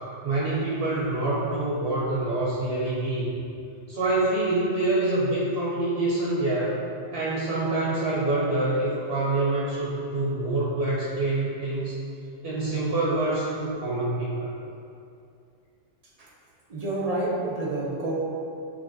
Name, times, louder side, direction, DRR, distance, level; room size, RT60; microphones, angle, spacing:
voice 1, 0.2-3.3 3.9-6.8 7.1-11.9 12.4-14.5, right 2 dB, 60° right, -6 dB, 1.0 m, -26 dB
voice 2, 16.7-18.1, right 2 dB, 45° right, -5 dB, 0.6 m, -28 dB
6.2 x 3.0 x 2.6 m, 2.5 s
omnidirectional pair, 1.3 m